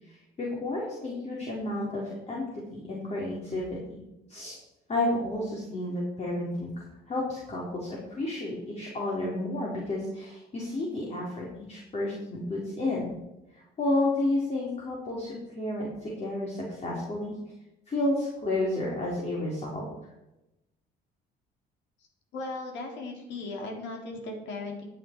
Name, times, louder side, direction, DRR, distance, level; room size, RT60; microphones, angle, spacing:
voice 1, 0.0-4.6 4.9-6.7 7.1-13.1 13.5-17.3 17.9-19.9, left 1 dB, 35° left, -4 dB, 3.9 m, -31 dB
voice 2, 22.3-24.8, left 2 dB, 80° left, 2 dB, 3.5 m, -37 dB
15.5 x 9.4 x 4.6 m, 0.95 s
cardioid pair, 110°, 19 cm